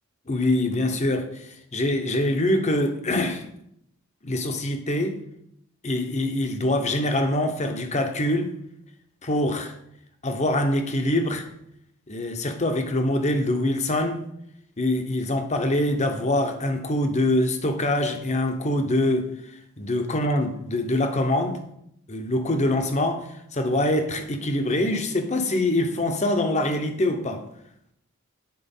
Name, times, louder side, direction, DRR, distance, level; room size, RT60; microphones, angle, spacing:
voice 1, 0.3-3.4 4.2-5.2 5.8-8.5 9.2-9.7 10.2-11.5 12.1-14.3 14.8-19.3 19.8-21.6 22.1-27.4, left 1 dB, 35° left, 0.9 m, -24 dB
9.3 x 4.6 x 5.5 m
head